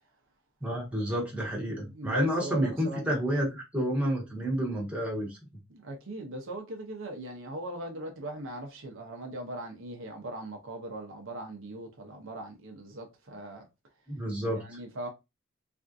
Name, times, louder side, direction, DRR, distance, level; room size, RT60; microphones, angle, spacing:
voice 1, 0.6-5.4 14.1-14.8, equal, 5° right, 1.1 m, -30 dB
voice 2, 1.7-3.2 5.7-13.7 14.5-15.1, right 1 dB, 65° right, 0.7 m, -40 dB
3.5 x 2.5 x 2.5 m
head